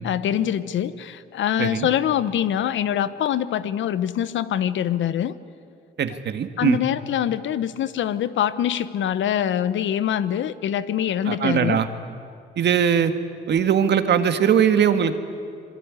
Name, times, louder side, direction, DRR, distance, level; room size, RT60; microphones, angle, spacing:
voice 1, 0.0-5.3 6.6-11.8, left 10 dB, 70° left, 14 dB, 1.1 m, -24 dB
voice 2, 6.0-6.8 11.3-11.9 12.6-13.1 13.5-15.2, right 8 dB, 60° right, 9 dB, 1.9 m, -20 dB
26.0 x 23.0 x 9.8 m, 2.3 s
cardioid pair, 90°, 20 cm